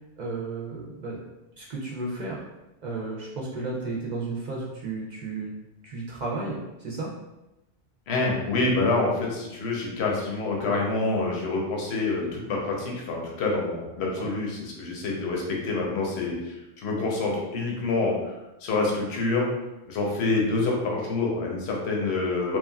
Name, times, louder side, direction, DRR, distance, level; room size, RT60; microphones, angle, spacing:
voice 1, 0.2-1.2 1.6-2.4 2.8-5.5 5.8-7.1 14.2-14.3, right 3 dB, 55° right, -4 dB, 0.5 m, -33 dB
voice 2, 8.1-18.4 18.6-19.5 19.9-22.6, left 3 dB, 75° left, -1 dB, 0.9 m, -27 dB
3.0 x 2.3 x 2.2 m, 0.98 s
omnidirectional pair, 1.1 m